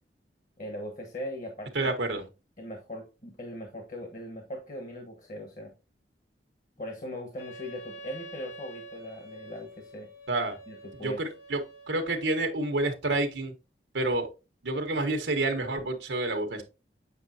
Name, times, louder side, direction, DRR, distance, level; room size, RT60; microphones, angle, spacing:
voice 1, 0.6-1.9 2.6-5.7 6.8-10.1 10.7-11.2, left 1 dB, 45° left, 3 dB, 1.2 m, -40 dB
voice 2, 1.7-2.2 10.3-10.5 11.0-11.6 11.9-13.5 13.9-14.3 14.6-16.6, right 2 dB, 90° right, 4 dB, 1.2 m, -28 dB
Wind instrument woodwind instrument, 7.4-12.4, right 1 dB, 80° left, 3.3 m, -47 dB
8.2 x 5.5 x 2.7 m, 0.29 s
head